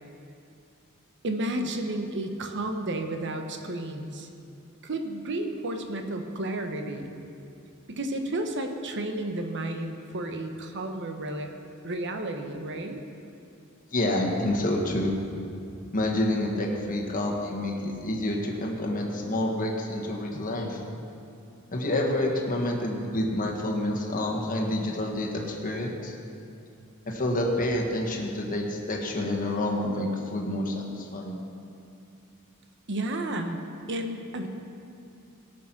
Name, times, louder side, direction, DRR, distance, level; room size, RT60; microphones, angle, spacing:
voice 1, 1.2-4.3 4.8-7.1 7.9-11.5 11.8-13.0 32.9-33.6 33.9-34.5, right 1 dB, 55° right, 5 dB, 1.1 m, -32 dB
voice 2, 13.9-15.1 15.9-20.8 21.7-26.1 27.1-31.4, left 1 dB, 40° left, 0 dB, 1.4 m, -28 dB
17.0 x 6.2 x 6.0 m, 2.7 s
head